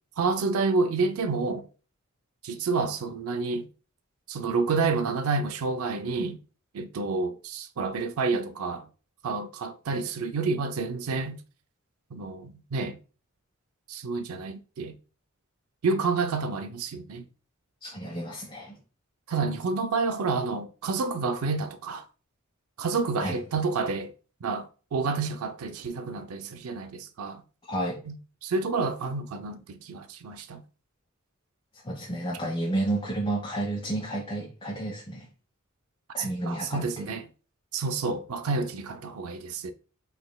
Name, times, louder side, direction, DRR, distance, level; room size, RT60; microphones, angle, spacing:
voice 1, 0.2-1.6 2.4-3.7 4.3-6.4 6.7-8.9 9.2-11.4 12.1-13.0 13.9-15.0 15.8-17.2 19.3-22.0 22.8-24.1 24.4-27.4 28.1-28.2 28.4-30.6 36.2-37.2 37.7-39.7, right 4 dB, 85° right, 0.4 m, -29 dB
voice 2, 17.8-18.8 23.2-23.4 27.6-28.0 31.8-35.3 36.1-37.0, right 1 dB, 25° left, 1.1 m, -31 dB
5.4 x 4.0 x 2.2 m
head